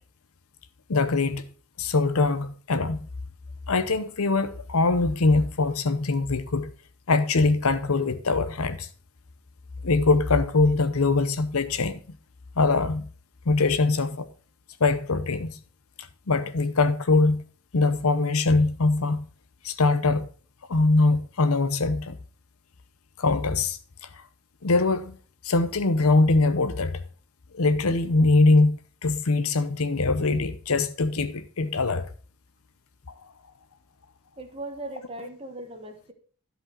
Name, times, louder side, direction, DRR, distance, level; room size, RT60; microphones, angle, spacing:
voice 1, 0.9-1.5 1.8-3.0 3.7-6.7 7.1-8.9 9.8-12.0 12.6-13.1 13.5-14.3 14.8-15.5 16.3-17.4 17.7-19.2 19.6-20.3 20.7-22.2 23.2-23.8 24.6-25.2 25.4-27.0 27.5-32.1, left 3 dB, 75° left, 0.8 m, -22 dB
voice 2, 34.4-36.1, right 2 dB, 25° right, 1.3 m, -38 dB
11.5 x 5.2 x 4.5 m
head